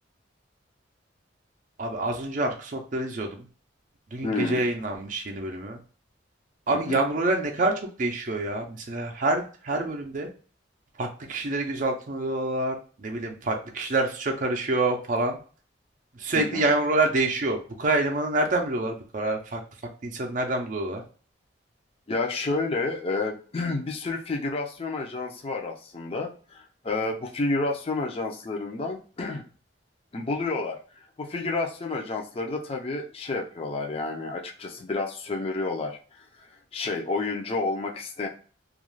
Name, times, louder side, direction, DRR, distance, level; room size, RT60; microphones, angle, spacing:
voice 1, 1.8-3.3 4.1-5.8 6.7-7.7 8.0-10.3 11.0-15.4 16.2-19.6 20.0-21.0, right 2 dB, 45° right, 2 dB, 0.4 m, -27 dB
voice 2, 4.2-4.6 6.7-7.0 16.3-16.6 22.1-29.4 30.1-30.8 31.2-36.2 36.7-38.3, left 3 dB, 30° left, 1 dB, 0.4 m, -30 dB
2.4 x 2.2 x 3.1 m, 0.40 s
head